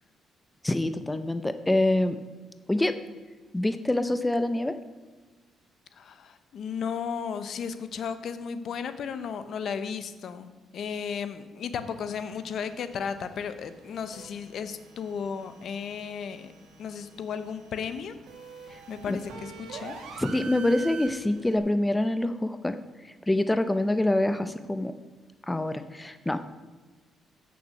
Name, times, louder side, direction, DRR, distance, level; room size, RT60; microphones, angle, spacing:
voice 1, 0.6-2.2 2.7-2.9 3.5-4.8 19.1-19.2 20.2-22.8 23.3-24.9 25.5-26.4, left 1 dB, 10° left, 11 dB, 0.6 m, -25 dB
voice 2, 5.9-16.5 16.8-18.1 18.9-20.0, left 6 dB, 65° left, 11 dB, 0.7 m, -34 dB
sound 1, 11.9-21.6, right 4 dB, 85° right, 1.8 m, -46 dB
8.0 x 6.8 x 6.3 m, 1.3 s
cardioid pair, 90°, 0 cm